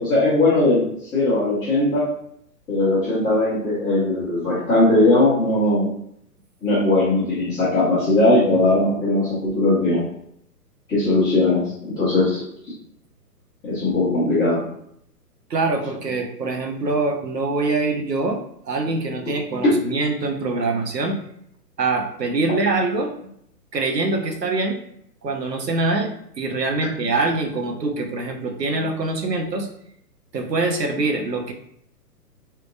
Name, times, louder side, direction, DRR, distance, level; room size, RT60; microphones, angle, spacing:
voice 1, 0.0-2.1 2.7-5.9 6.6-10.0 10.9-12.7 13.6-14.6 19.6-19.7, left 2 dB, 10° left, -13 dB, 0.7 m, -19 dB
voice 2, 15.5-18.4 18.7-21.2 21.8-23.1 23.7-24.8 25.2-29.7 30.3-31.5, right 3 dB, 80° right, 4 dB, 0.9 m, -24 dB
3.6 x 2.8 x 2.5 m, 0.70 s
figure-of-eight pair, 125°, 49 cm